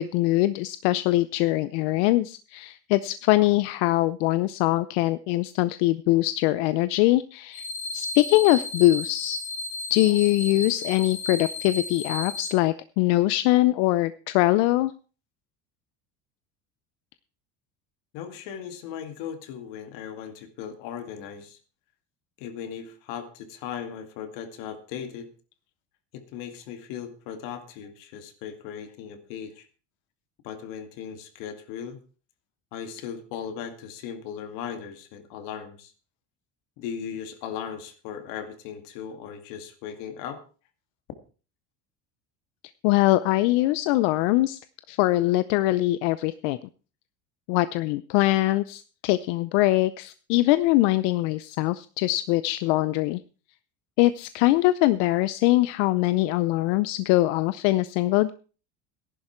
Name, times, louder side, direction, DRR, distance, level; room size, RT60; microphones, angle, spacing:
voice 1, 0.0-7.7 7.9-9.4 9.9-14.9 42.8-44.6 44.9-46.6 47.5-53.2 54.0-58.3, left 17 dB, 90° left, 15 dB, 0.7 m, -22 dB
sound 1, 7.5-12.5, left 2 dB, 25° left, 3.1 m, -34 dB
voice 2, 18.1-21.6 22.4-25.3 26.1-29.7 30.4-32.0 32.7-35.9 36.8-40.4, left 8 dB, 70° left, 9 dB, 2.2 m, -37 dB
14.5 x 11.0 x 4.5 m, 0.37 s
cardioid pair, 170°, 35 cm